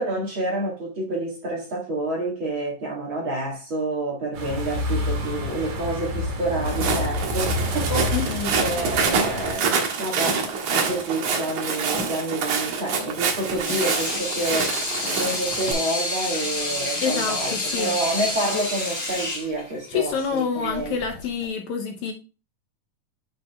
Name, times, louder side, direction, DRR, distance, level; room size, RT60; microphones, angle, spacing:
voice 1, 0.0-21.0, right 1 dB, 40° right, 2.3 m, -29 dB
sound 1, 4.3-9.5, left 1 dB, 85° right, 4.0 m, -28 dB
Walk footsteps, 6.6-15.7, right 5 dB, 65° right, 2.8 m, -26 dB
voice 2, 8.1-8.6 17.0-17.9 19.9-22.1, left 6 dB, 70° left, 2.0 m, -27 dB
Water tap faucet / Sink (filling or washing), 13.4-21.5, left 2 dB, 20° left, 2.1 m, -29 dB
10.5 x 5.4 x 2.3 m
omnidirectional pair, 3.8 m